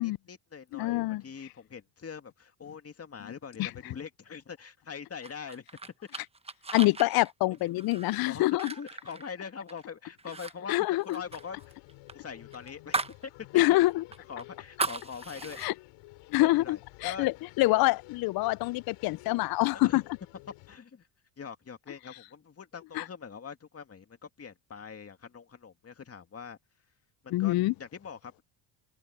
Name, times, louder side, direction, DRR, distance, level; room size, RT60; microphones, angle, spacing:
voice 1, 0.0-5.7 7.5-11.7 12.1-13.9 14.3-15.7 16.4-17.3 19.7-20.0 20.7-21.1 21.4-26.6 27.2-27.5 27.8-28.4, left 6 dB, 30° left, 2.3 m, -43 dB
voice 2, 0.7-1.2 3.6-3.7 6.7-8.7 10.7-11.2 13.5-14.0 15.6-15.7 16.3-20.0 23.0-23.1 27.3-27.7, left 19 dB, 50° left, 0.4 m, -26 dB
sound 1, 5.2-9.8 10.2-10.5 10.8-13.2 13.6-13.7 14.1-15.7, right 3 dB, 10° right, 1.0 m, -37 dB
sound 2, 11.2-20.8, left 21 dB, 85° left, 4.5 m, -53 dB
open air
cardioid pair, 105°, 48 cm